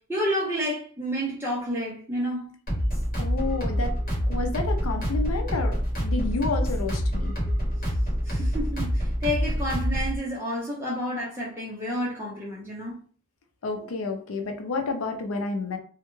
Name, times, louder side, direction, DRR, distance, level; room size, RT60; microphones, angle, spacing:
voice 1, 0.1-2.5 8.2-13.0, equal, 10° right, 0.6 m, -30 dB
sound 1, 2.7-10.2, equal, 40° left, 1.1 m, -26 dB
voice 2, 3.2-3.9 4.3-7.4 13.6-15.8, left 3 dB, 85° left, 0.5 m, -30 dB
2.3 x 2.1 x 3.0 m
head